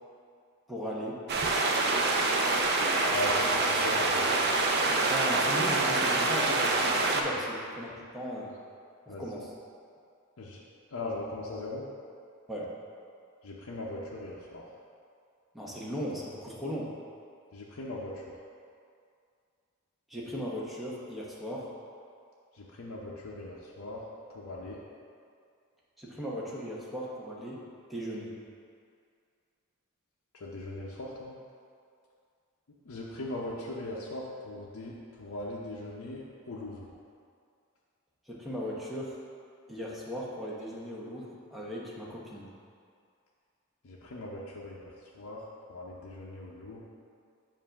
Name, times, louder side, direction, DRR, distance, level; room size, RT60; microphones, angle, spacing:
voice 1, 0.7-1.2 5.1-8.5 9.1-9.5 12.5-12.7 15.5-16.9 20.1-21.7 26.0-27.6 27.9-28.3 38.3-39.2 39.7-42.5, equal, ahead, -6 dB, 0.9 m, -37 dB
sound 1, 1.3-7.2, right 2 dB, 50° right, 0.5 m, -26 dB
voice 2, 3.1-4.5 7.3-7.4 9.1-9.2 10.4-10.6 10.9-11.8 13.4-14.6 17.5-18.1 22.8-24.0 24.3-24.8 30.4-31.3 32.9-34.9 35.2-36.2 36.5-36.9 43.8-44.9 45.2-45.4 45.7-46.8, left 1 dB, 65° left, -5 dB, 0.6 m, -39 dB
7.3 x 2.6 x 5.7 m, 2.3 s
head